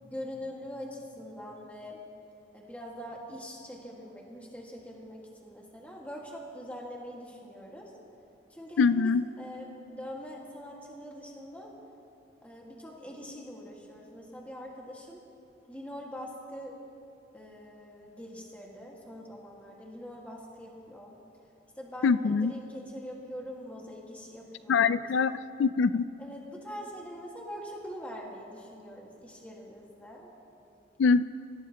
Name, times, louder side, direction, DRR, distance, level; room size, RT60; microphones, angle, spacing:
voice 1, 0.0-2.0 2.5-7.9 8.5-11.7 12.4-15.2 15.7-16.7 17.3-21.2 21.8-25.0 26.2-30.3, equal, 10° left, -3 dB, 1.8 m, -43 dB
voice 2, 8.8-9.2 22.0-22.5 24.7-25.3 25.6-26.0 31.0-31.2, left 5 dB, 85° left, 14 dB, 0.4 m, -23 dB
29.0 x 16.0 x 2.9 m, 2.6 s
head